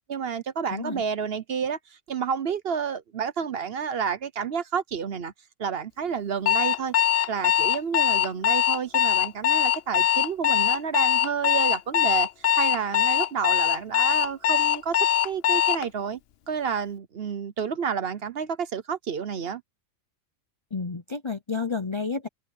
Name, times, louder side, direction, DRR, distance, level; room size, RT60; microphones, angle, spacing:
voice 1, 0.1-1.8 2.1-5.3 5.6-6.9 7.3-12.3 12.6-15.0 15.2-16.2 16.5-19.6, right 7 dB, 55° right, 1.0 m, -30 dB
voice 2, 0.7-1.0 20.7-22.3, left 4 dB, 30° left, 0.6 m, -30 dB
Alarm, 6.5-15.9, left 10 dB, 60° left, 0.8 m, -22 dB
omnidirectional pair, 1.3 m